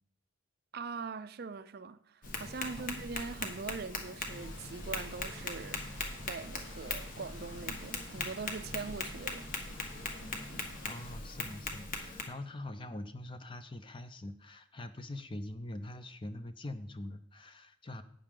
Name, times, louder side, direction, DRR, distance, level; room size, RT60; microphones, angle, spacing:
voice 1, 0.7-9.5, right 4 dB, 45° right, 0.4 m, -42 dB
Tap, 2.2-12.2, left 3 dB, 40° left, 1.4 m, -40 dB
sound 1, 4.3-11.2, left 1 dB, 80° left, 2.5 m, -53 dB
voice 2, 10.9-18.0, left 1 dB, 25° left, 0.6 m, -43 dB
12.0 x 8.6 x 3.7 m
head